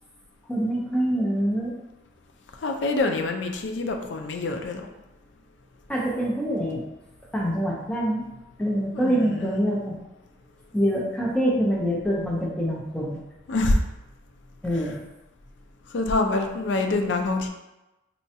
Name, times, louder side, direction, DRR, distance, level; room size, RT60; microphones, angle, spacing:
voice 1, 0.5-1.8 5.9-6.8 7.3-8.2 8.6-10.0 10.7-13.2 14.6-15.0, equal, 5° left, -4 dB, 0.6 m, -25 dB
voice 2, 2.6-4.9 8.9-9.6 13.5-13.8 15.9-17.5, left 2 dB, 70° left, 4 dB, 0.4 m, -25 dB
4.1 x 2.3 x 2.7 m, 0.99 s
head